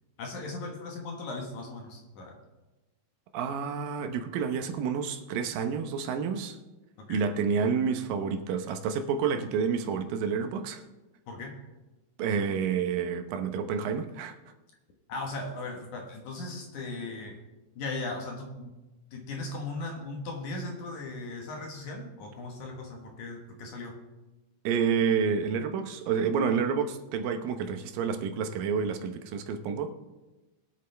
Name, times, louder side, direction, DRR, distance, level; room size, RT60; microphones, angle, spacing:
voice 1, 0.2-2.4 7.0-7.2 11.3-11.6 15.1-17.4 17.8-18.8 19.1-24.0, left 2 dB, 60° left, 2 dB, 2.5 m, -38 dB
voice 2, 3.3-6.6 7.1-10.8 12.2-14.3 24.6-29.9, right 6 dB, 75° right, 7 dB, 2.5 m, -29 dB
21.5 x 8.4 x 3.4 m, 1.1 s
omnidirectional pair, 4.2 m